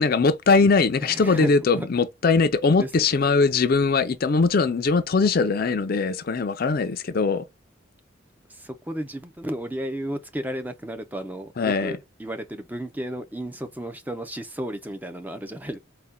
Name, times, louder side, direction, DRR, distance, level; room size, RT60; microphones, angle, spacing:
voice 1, 0.0-7.4 11.6-11.9, left 4 dB, 50° left, 0.4 m, -21 dB
voice 2, 1.0-1.9 2.8-3.2 8.5-15.8, right 1 dB, 10° right, 0.5 m, -33 dB
4.2 x 2.2 x 3.5 m
head